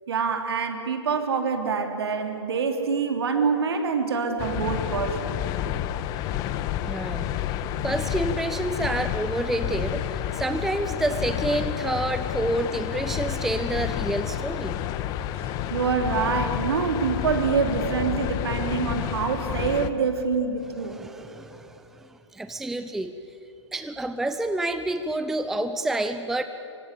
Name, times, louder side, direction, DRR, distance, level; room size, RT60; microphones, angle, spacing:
voice 1, 0.1-5.4 15.7-21.0, right 5 dB, 55° right, 6 dB, 3.4 m, -26 dB
sound 1, 4.4-19.9, left 11 dB, 25° left, 1.0 m, -30 dB
voice 2, 6.8-7.5 7.8-14.8 20.8-23.1 23.7-26.4, right 1 dB, ahead, 9 dB, 0.6 m, -29 dB
26.0 x 24.0 x 8.4 m, 2.9 s
figure-of-eight pair, 120°, 16 cm